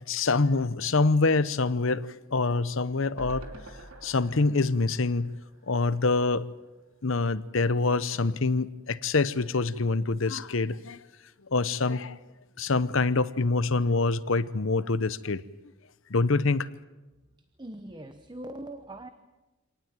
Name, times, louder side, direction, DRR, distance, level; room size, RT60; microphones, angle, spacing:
voice 1, 0.0-2.0 2.3-3.4 4.0-5.3 5.7-6.5 7.0-11.0 11.5-12.2 12.6-15.4 16.1-16.7, left 3 dB, 60° left, 16 dB, 0.9 m, -25 dB
sound 1, 3.2-6.4 6.8-6.9 7.1-7.2, right 1 dB, 70° right, 2.7 m, -46 dB
voice 2, 17.4-19.1, right 1 dB, 20° right, 9 dB, 1.0 m, -41 dB
26.0 x 18.5 x 9.1 m, 1.1 s
head